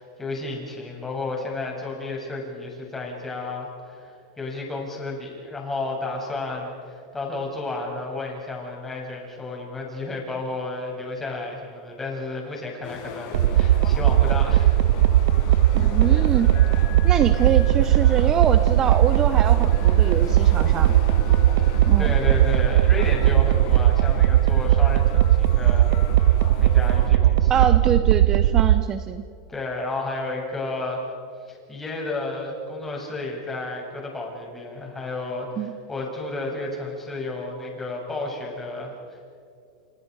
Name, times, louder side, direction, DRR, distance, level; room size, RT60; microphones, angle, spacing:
voice 1, 0.0-14.7 21.7-25.9 26.3-26.4 26.6-27.8 29.5-31.0 31.4-39.2, left 2 dB, 10° left, -1 dB, 7.5 m, -32 dB
sound 1, 12.8-27.1, left 5 dB, 45° left, 7.1 m, -37 dB
sound 2, 13.3-28.8, right 13 dB, 70° right, 0.6 m, -18 dB
voice 2, 15.7-16.5 17.0-20.9 21.9-22.1 27.5-29.2 35.6-35.7, right 8 dB, 25° right, 10 dB, 1.0 m, -25 dB
30.0 x 28.0 x 5.0 m, 2.4 s
supercardioid pair, 140°, 2 cm